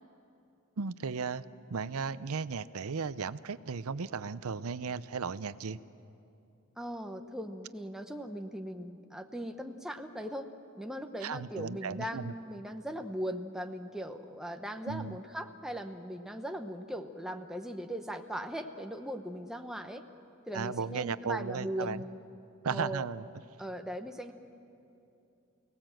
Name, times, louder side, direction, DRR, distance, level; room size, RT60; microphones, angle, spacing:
voice 1, 0.8-1.4 1.7-5.8 11.2-12.3 14.9-15.1 20.5-22.0 22.6-23.2, right 5 dB, 85° right, 15 dB, 0.6 m, -35 dB
voice 2, 6.8-10.5 10.8-20.0 20.5-22.2 22.7-23.0 23.6-24.3, equal, ahead, 5 dB, 0.9 m, -39 dB
29.0 x 18.5 x 7.7 m, 2.7 s
head